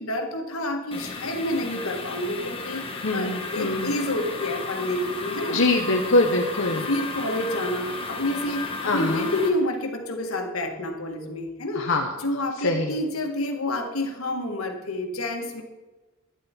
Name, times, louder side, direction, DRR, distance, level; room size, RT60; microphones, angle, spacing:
voice 1, 0.0-5.6 6.8-11.9 12.2-15.6, left 1 dB, 90° left, 4 dB, 1.7 m, -29 dB
sound 1, 0.9-9.5, left 3 dB, 25° left, 1.4 m, -34 dB
voice 2, 3.0-3.9 5.5-6.9 8.8-9.3 11.7-12.2 12.6-12.9, left 2 dB, 60° left, 1 dB, 1.0 m, -23 dB
11.5 x 11.0 x 4.4 m, 1.2 s
head